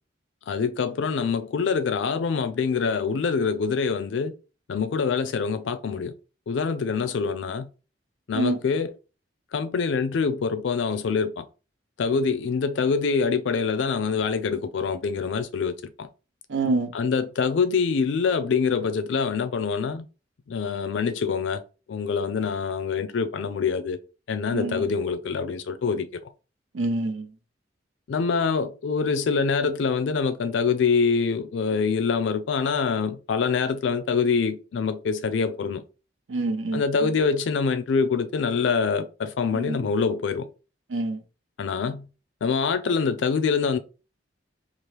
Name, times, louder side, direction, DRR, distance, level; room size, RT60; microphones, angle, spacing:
voice 1, 0.5-4.3 4.7-6.1 6.5-7.7 8.3-8.9 9.5-11.4 12.0-16.1 16.9-20.0 20.5-21.6 21.9-24.0 24.3-26.2 28.1-35.8 36.7-40.5 41.6-42.1 42.4-43.8, left 5 dB, 80° left, 0.4 m, -25 dB
voice 2, 16.5-16.9 24.5-24.8 26.7-27.3 36.3-36.8 39.5-39.8 40.9-41.2, right 2 dB, 90° right, 0.6 m, -26 dB
2.9 x 2.4 x 3.2 m
head